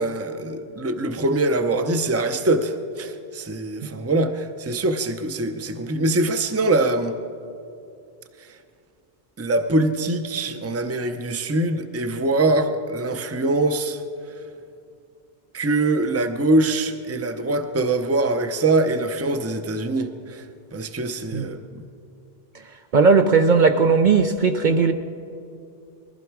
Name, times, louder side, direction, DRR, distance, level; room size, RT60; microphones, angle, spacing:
voice 1, 0.0-7.1 9.4-14.0 15.5-20.4 20.7-21.8, right 2 dB, 15° right, 8 dB, 0.6 m, -23 dB
voice 2, 22.9-24.9, right 4 dB, 55° right, 7 dB, 0.7 m, -17 dB
20.5 x 15.0 x 4.7 m, 2.5 s
omnidirectional pair, 1.0 m